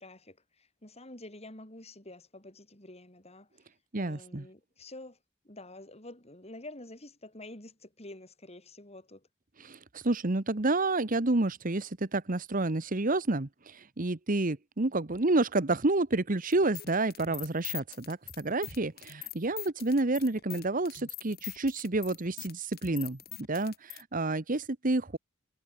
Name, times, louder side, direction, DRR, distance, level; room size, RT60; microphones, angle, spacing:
voice 1, 0.0-3.5 3.9-5.2 5.4-9.3, left 2 dB, 30° left, 6.0 m, -48 dB
voice 2, 3.9-4.5 9.6-25.2, right 2 dB, 45° right, 1.2 m, -29 dB
sound 1, 16.5-24.0, left 14 dB, 50° left, 3.5 m, -42 dB
head